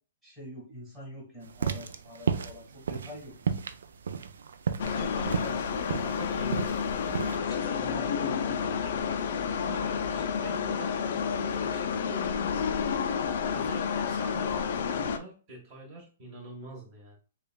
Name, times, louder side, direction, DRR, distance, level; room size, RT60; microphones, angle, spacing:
voice 1, 0.2-3.5 4.8-5.2 7.8-9.2, equal, 5° right, -5 dB, 1.5 m, -45 dB
sound 1, 1.5-7.4, right 6 dB, 90° right, 0.4 m, -32 dB
sound 2, 4.8-15.2, left 6 dB, 50° left, 0.4 m, -30 dB
voice 2, 4.9-5.7 6.0-8.2 8.6-9.0 9.5-13.0 13.5-17.2, right 2 dB, 25° right, -1 dB, 1.3 m, -45 dB
6.6 x 2.3 x 2.2 m, 0.37 s
hypercardioid pair, 170°, 0 cm